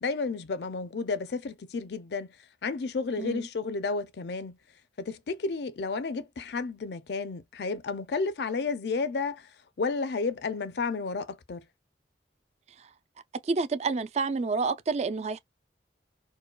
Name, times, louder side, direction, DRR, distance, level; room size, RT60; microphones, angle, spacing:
voice 1, 0.0-2.3 2.6-4.6 5.0-9.5 9.8-11.6, left 4 dB, 65° left, 0.5 m, -32 dB
voice 2, 13.4-15.4, right 4 dB, 35° right, 0.3 m, -29 dB
4.6 x 2.2 x 2.2 m
head